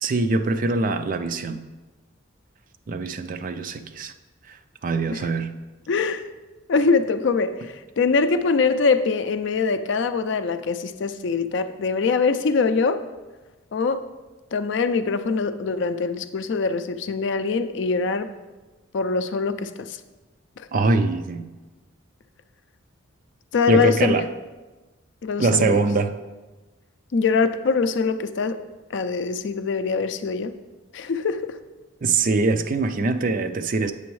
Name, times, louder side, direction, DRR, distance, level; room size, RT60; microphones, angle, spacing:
voice 1, 0.0-1.6 2.9-4.1 4.5-4.6 4.8-5.5 20.7-21.5 23.7-24.3 25.4-26.2 32.0-33.9, right 3 dB, 40° right, 9 dB, 0.4 m, -23 dB
voice 2, 5.9-6.2 6.7-13.0 13.7-14.0 14.5-18.3 18.9-20.0 20.6-20.7 23.5-24.3 25.2-25.8 27.1-28.6 28.9-30.5 30.9-31.6, left 4 dB, 60° left, 10 dB, 0.4 m, -23 dB
8.3 x 6.9 x 3.1 m, 1.2 s
head